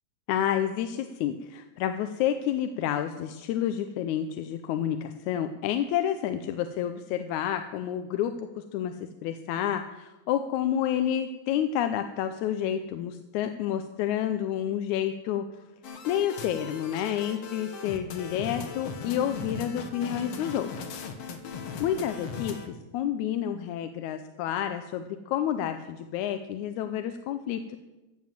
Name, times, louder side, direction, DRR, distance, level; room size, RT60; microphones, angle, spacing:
voice 1, 0.3-15.5 16.1-20.8 21.8-27.8, left 10 dB, 85° left, 8 dB, 2.0 m, -29 dB
sound 1, 15.8-22.7, left 5 dB, 60° left, 2.1 m, -38 dB
14.0 x 7.6 x 7.6 m, 1.1 s
omnidirectional pair, 3.3 m